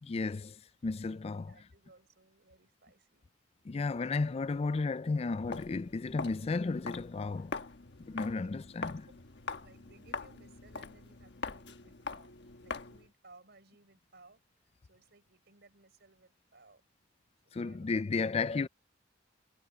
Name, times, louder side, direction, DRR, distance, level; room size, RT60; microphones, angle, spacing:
voice 1, 0.0-1.5 3.7-7.6 8.1-9.1 17.5-18.7, left 4 dB, 35° left, 0.4 m, -33 dB
voice 2, 1.5-3.3 8.4-8.5 9.1-9.2 9.6-16.8 17.4-18.3, right 3 dB, 60° right, 5.9 m, -62 dB
Walk footsteps, 5.4-13.1, left 4 dB, 65° left, 1.3 m, -43 dB
head